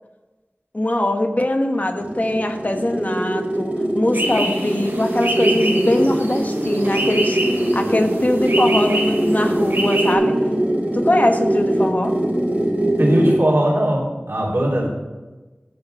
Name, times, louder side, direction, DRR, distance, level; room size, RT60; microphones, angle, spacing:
voice 1, 0.7-7.4 7.7-10.4 10.9-12.2, left 1 dB, 40° left, 5 dB, 1.1 m, -22 dB
sound 1, 1.7-13.5, right 1 dB, 35° right, 3.9 m, -21 dB
sound 2, 4.1-10.1, right 1 dB, 65° right, 2.6 m, -27 dB
voice 2, 13.0-14.9, right 1 dB, 90° right, -4 dB, 3.0 m, -19 dB
10.5 x 5.9 x 6.5 m, 1.2 s
wide cardioid pair, 50°, 4 cm